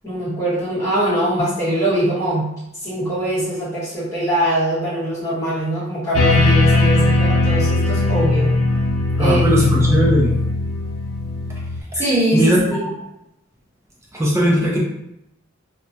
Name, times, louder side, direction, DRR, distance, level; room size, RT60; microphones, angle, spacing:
voice 1, 0.0-2.5 2.8-8.5 9.2-9.4 12.0-12.9, right 1 dB, 15° left, -11 dB, 1.1 m, -22 dB
sound 1, 6.1-11.8, left 2 dB, 80° left, 0.4 m, -18 dB
voice 2, 9.2-10.3 11.9-12.0 12.3-12.9 14.1-14.8, equal, 15° right, -3 dB, 0.3 m, -18 dB
2.3 x 2.1 x 2.7 m, 0.84 s
head